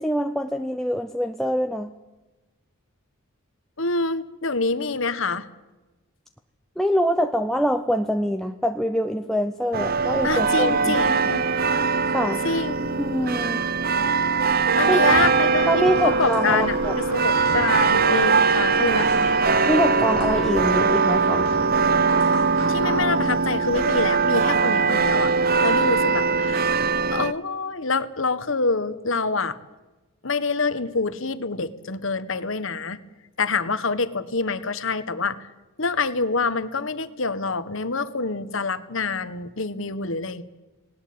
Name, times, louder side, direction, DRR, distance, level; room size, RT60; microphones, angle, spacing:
voice 1, 0.0-1.9 6.8-11.4 12.1-12.4 13.0-13.6 14.8-15.0 15.7-17.0 19.7-21.5, equal, ahead, 6 dB, 0.6 m, -24 dB
voice 2, 3.8-5.5 10.2-11.4 12.4-13.0 14.8-19.3 22.7-25.3 25.6-26.7 27.1-29.6 30.2-33.0 33.4-35.4 35.8-40.4, left 4 dB, 60° left, 13 dB, 1.2 m, -26 dB
sound 1, 9.7-27.3, right 4 dB, 45° right, 0.7 m, -21 dB
sound 2, 15.1-23.1, right 2 dB, 80° right, 7.2 m, -34 dB
19.0 x 18.5 x 8.6 m, 1.1 s
head